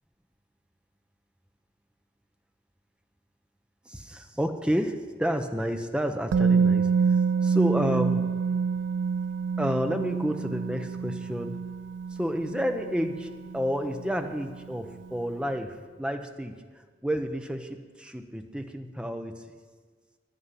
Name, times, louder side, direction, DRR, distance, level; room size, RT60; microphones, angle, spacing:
voice 1, 3.9-8.3 9.6-11.6 12.1-19.4, equal, 5° right, 6 dB, 0.8 m, -30 dB
Musical instrument, 6.3-14.2 14.5-14.7, right 5 dB, 85° right, 0.3 m, -27 dB
9.8 x 9.7 x 9.8 m, 1.5 s
head